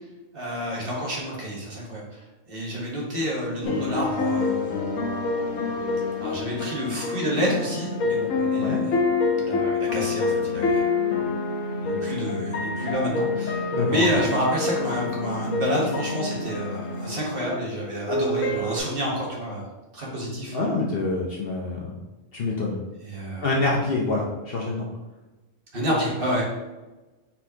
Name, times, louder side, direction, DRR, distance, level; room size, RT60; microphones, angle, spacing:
voice 1, 0.3-4.8 6.2-8.9 9.4-10.9 11.8-19.6 19.9-20.6 23.0-23.5 25.7-26.4, equal, 45° right, -4 dB, 1.4 m, -29 dB
sound 1, 3.6-18.8, left 3 dB, 80° left, 1.2 m, -27 dB
voice 2, 13.7-14.1 20.5-21.9 22.3-22.8 23.4-24.9, left 3 dB, 55° left, -2 dB, 0.8 m, -26 dB
4.5 x 4.2 x 2.8 m, 1.1 s
omnidirectional pair, 1.4 m